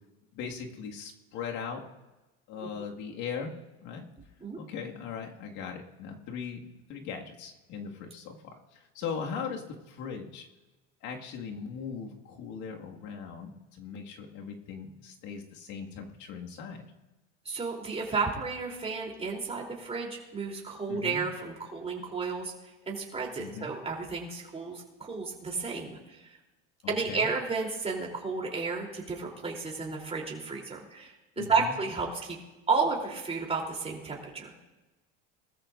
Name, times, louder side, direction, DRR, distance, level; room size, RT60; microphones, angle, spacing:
voice 1, 0.3-1.8 2.5-3.5 3.8-4.1 4.6-6.6 6.9-10.5 11.0-16.8 20.9-21.2 23.4-23.7 26.8-27.3 31.4-31.7, left 6 dB, 60° left, 1 dB, 2.1 m, -39 dB
voice 2, 17.4-22.5 22.9-26.2 26.9-32.4 32.7-34.5, right 4 dB, 20° right, -1 dB, 3.5 m, -32 dB
21.5 x 13.5 x 2.6 m, 1.1 s
supercardioid pair, 110°, 33 cm